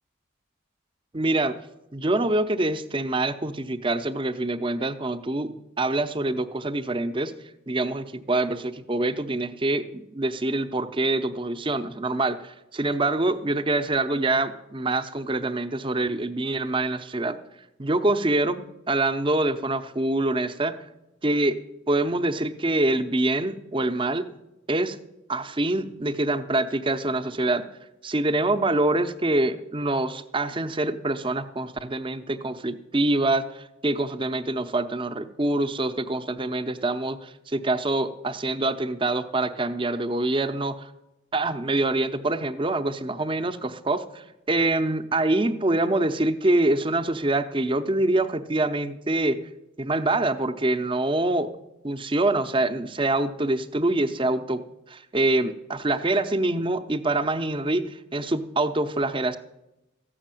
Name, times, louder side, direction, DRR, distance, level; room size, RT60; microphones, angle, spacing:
voice 1, 1.1-1.6 1.9-7.3 7.7-17.4 17.8-20.8 21.2-21.6 21.9-24.3 24.7-25.0 25.3-27.7 28.0-40.9 41.3-49.4 49.8-51.5 51.8-54.6 54.9-59.4, right 2 dB, 25° right, 10 dB, 0.7 m, -25 dB
14.5 x 6.5 x 9.0 m, 0.91 s
head